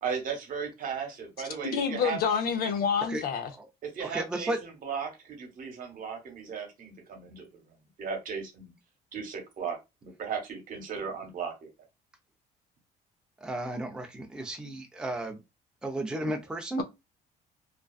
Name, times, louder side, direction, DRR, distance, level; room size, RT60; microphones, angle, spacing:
voice 1, 0.0-2.2 3.8-7.6 8.0-8.7 9.1-11.7, right 6 dB, 55° right, 1.0 m, -36 dB
voice 2, 1.6-3.5, left 6 dB, 65° left, 0.6 m, -28 dB
voice 3, 4.0-4.6 13.4-15.4 15.8-16.8, right 1 dB, 5° right, 0.5 m, -33 dB
2.5 x 2.3 x 2.3 m
cardioid pair, 110°, 17 cm